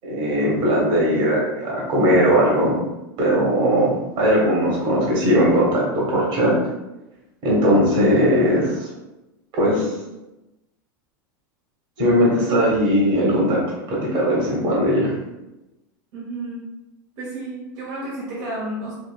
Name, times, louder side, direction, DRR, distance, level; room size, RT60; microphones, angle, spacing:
voice 1, 0.0-2.7 3.2-6.5 7.4-8.9 9.5-9.9 12.0-13.6 13.9-15.1, equal, 50° right, -4 dB, 1.4 m, -19 dB
voice 2, 16.1-16.6 17.2-18.9, right 1 dB, 70° right, -5 dB, 1.3 m, -31 dB
5.1 x 2.5 x 2.3 m, 0.99 s
hypercardioid pair, 110°, 11 cm